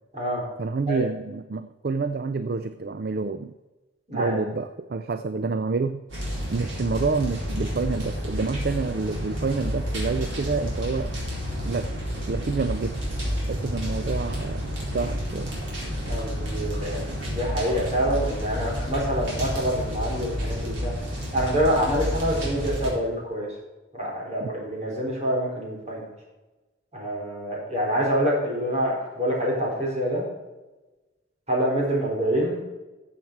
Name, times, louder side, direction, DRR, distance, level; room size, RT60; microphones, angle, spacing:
voice 1, 0.6-3.5 4.1-6.0 6.5-11.1 11.6-11.9 12.3-15.5 24.4-24.5, right 4 dB, 55° right, 11 dB, 0.4 m, -28 dB
sound 1, 6.1-22.9, equal, 90° right, 4.4 m, -30 dB
voice 2, 16.0-20.9 21.3-23.5 23.9-26.1 26.9-30.2 31.5-32.6, equal, 35° right, -2 dB, 4.0 m, -26 dB
13.5 x 7.4 x 4.6 m, 1.1 s
head